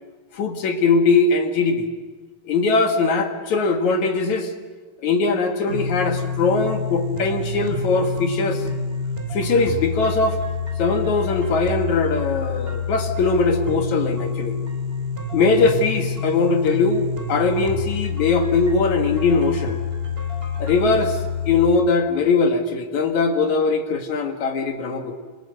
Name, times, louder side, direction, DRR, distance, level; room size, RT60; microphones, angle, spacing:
voice 1, 0.3-1.9 2.4-4.5 5.0-8.6 9.3-10.4 10.8-14.6 15.3-19.8 20.6-21.2 21.5-25.2, left 4 dB, 55° left, 6 dB, 2.7 m, -20 dB
sound 1, 5.7-21.7, left 4 dB, 15° right, 2.6 m, -27 dB
28.5 x 25.5 x 7.9 m, 1.3 s
omnidirectional pair, 4.5 m